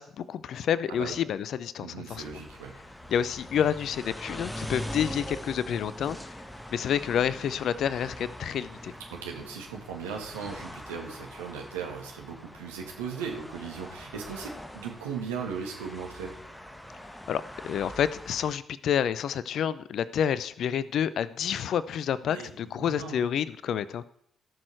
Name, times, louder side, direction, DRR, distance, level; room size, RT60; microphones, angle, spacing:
voice 1, 0.0-2.2 3.1-6.3 6.7-8.9 17.3-24.1, left 9 dB, 60° left, 17 dB, 0.6 m, -29 dB
voice 2, 1.8-2.7 9.1-16.3 22.2-23.2, right 6 dB, 80° right, 0 dB, 2.2 m, -38 dB
sound 1, 2.1-18.6, equal, 10° left, 1.4 m, -43 dB
17.0 x 6.5 x 4.6 m, 0.69 s
figure-of-eight pair, 40°, 0 cm